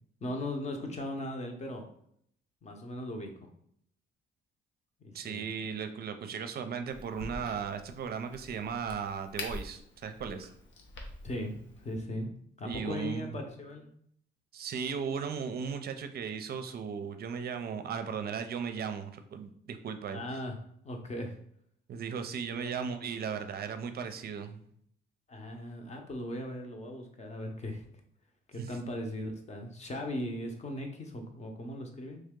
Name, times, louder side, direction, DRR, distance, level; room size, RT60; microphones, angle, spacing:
voice 1, 0.2-1.9 2.6-3.5 5.0-5.4 11.2-12.3 12.6-13.9 20.1-20.6 20.8-21.3 22.6-22.7 25.3-27.9 28.5-32.2, left 1 dB, 35° left, 3 dB, 0.8 m, -38 dB
voice 2, 5.1-10.5 12.6-13.3 14.5-20.2 21.9-24.6 28.6-28.7, right 6 dB, 50° right, 8 dB, 0.5 m, -36 dB
Crack, 6.9-12.0, left 2 dB, 70° left, 0.8 m, -45 dB
3.2 x 2.8 x 3.6 m, 0.67 s
cardioid pair, 90°, 20 cm